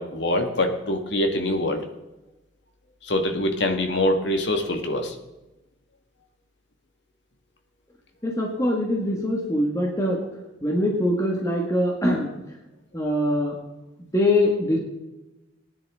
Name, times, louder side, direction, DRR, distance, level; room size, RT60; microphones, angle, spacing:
voice 1, 0.0-1.9 3.0-5.1, left 1 dB, 65° left, 5 dB, 1.7 m, -24 dB
voice 2, 8.2-10.2 10.6-12.3 12.9-13.6 14.0-14.8, left 1 dB, 15° left, -1 dB, 1.7 m, -23 dB
19.5 x 10.0 x 3.6 m, 1.0 s
head